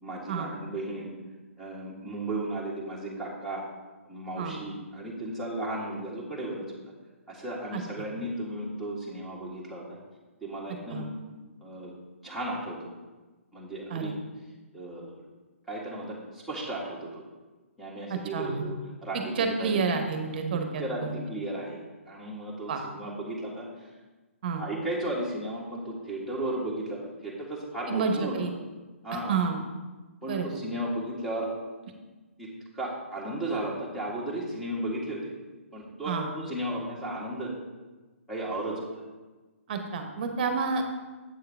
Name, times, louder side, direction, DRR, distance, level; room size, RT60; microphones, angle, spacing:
voice 1, 0.0-1.1 1.6-3.6 4.1-6.6 7.3-9.8 10.4-11.0 11.6-11.9 12.2-12.9 13.5-14.1 14.7-15.1 15.7-17.2 17.8-18.7 19.0-19.8 20.5-21.8 22.1-23.7 24.5-28.3 29.0-29.4 30.2-31.5 32.4-32.5 32.7-35.3 35.7-37.5 38.3-38.9, right 1 dB, ahead, -5 dB, 1.7 m, -34 dB
voice 2, 7.7-8.1 10.9-11.1 13.9-14.1 18.1-18.7 19.4-21.1 22.7-22.8 24.4-24.6 27.9-28.5 29.3-29.6 30.3-30.6 36.1-36.3 39.7-40.8, right 5 dB, 40° right, 5 dB, 1.0 m, -29 dB
8.0 x 6.7 x 3.5 m, 1.2 s
figure-of-eight pair, 135°, 7 cm